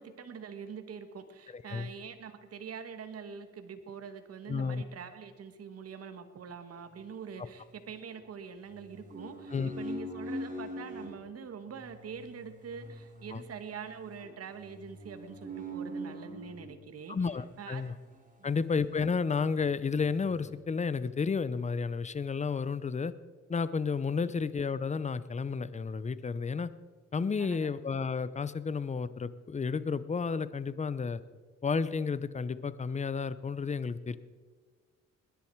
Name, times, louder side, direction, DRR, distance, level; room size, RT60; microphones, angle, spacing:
voice 1, 0.0-17.9 18.4-18.6 24.2-24.3 27.4-27.7, right 6 dB, 55° right, 9 dB, 1.5 m, -44 dB
voice 2, 1.5-1.9 4.5-4.8 9.5-9.7 13.3-13.4 17.1-17.9 18.4-23.1 23.5-26.7 27.1-31.2 31.6-34.2, left 5 dB, 25° left, 15 dB, 0.7 m, -32 dB
sound 1, 7.0-8.2 8.7-11.1 11.7-16.8 17.6-18.8 19.1-19.2 19.6-20.6, equal, 25° right, 3.9 m, -44 dB
20.5 x 10.5 x 4.7 m, 1.5 s
cardioid pair, 90°, 30 cm